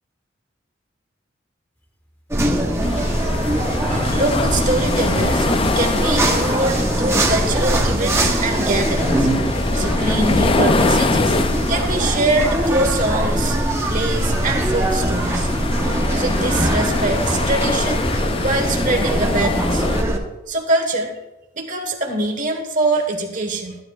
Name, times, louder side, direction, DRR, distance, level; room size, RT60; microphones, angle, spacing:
sound 1, 2.1-2.2 2.6-3.0 3.8-5.5 5.8-6.2 7.0-8.3 8.8-8.9 9.4-10.4 10.7-11.5 12.1-15.8 16.1-16.3 16.6-16.7, equal, 10° left, 1.1 m, -38 dB
sound 2, 2.3-20.2, right 1 dB, 15° right, 0.9 m, -21 dB
sound 3, 2.8-20.0, left 3 dB, 25° left, 0.3 m, -25 dB
voice 1, 3.5-9.3 9.7-11.4 11.7-13.6 13.9-15.5 16.2-18.0 18.4-19.9 20.5-21.1 21.5-23.8, right 2 dB, 40° right, 2 dB, 1.3 m, -23 dB
14.5 x 9.7 x 2.4 m, 1.0 s
head